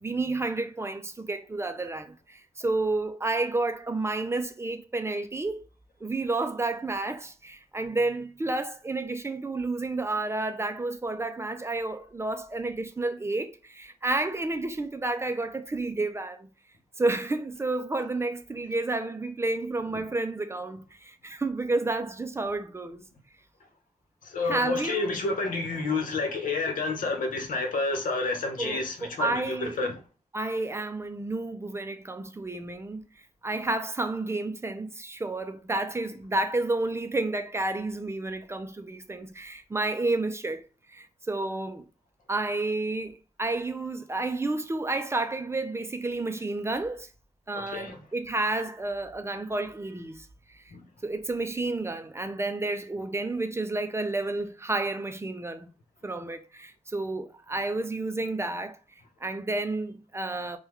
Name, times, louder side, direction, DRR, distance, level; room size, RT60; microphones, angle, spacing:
voice 1, 0.0-5.6 6.0-16.5 17.0-23.0 24.4-25.1 28.6-29.8 30.3-33.0 33.4-40.6 40.9-41.8 42.3-47.1 47.5-50.6 51.0-55.7 56.0-58.8 59.2-60.6, right 2 dB, 20° right, 0.4 m, -30 dB
voice 2, 24.2-29.9 47.5-48.0 50.7-50.8, left 3 dB, 80° left, 0.9 m, -29 dB
3.4 x 2.2 x 3.0 m
wide cardioid pair, 115°, 14 cm